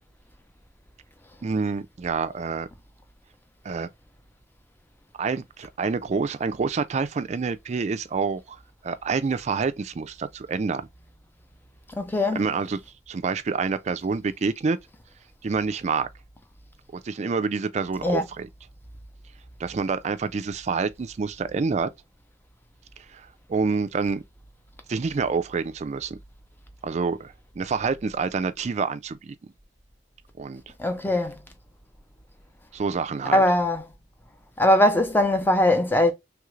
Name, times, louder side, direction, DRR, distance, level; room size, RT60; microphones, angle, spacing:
voice 1, 1.4-2.7 3.6-3.9 5.2-8.6 8.8-10.9 12.4-12.8 13.1-14.8 15.4-16.1 16.9-18.5 19.6-21.9 23.1-24.2 24.9-26.2 26.8-29.3 30.4-30.6 32.7-33.4, right 4 dB, 40° right, 0.3 m, -27 dB
voice 2, 12.0-12.4 18.0-18.2 30.8-31.4 33.3-33.8 34.6-36.1, left 1 dB, 10° left, 0.6 m, -20 dB
3.2 x 2.4 x 3.0 m
head